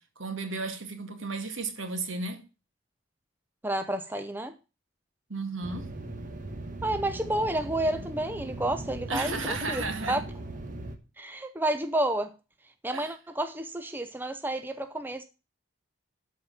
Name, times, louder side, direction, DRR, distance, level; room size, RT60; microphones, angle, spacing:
voice 1, 0.2-2.4 5.3-5.9 9.1-10.2 12.9-13.1, right 3 dB, 75° right, 2.1 m, -33 dB
voice 2, 3.6-4.5 6.8-10.2 11.2-12.3 12.8-15.2, right 1 dB, 10° right, 0.6 m, -30 dB
sound 1, 5.6-11.0, right 1 dB, 40° right, 1.3 m, -39 dB
12.5 x 4.5 x 7.1 m
head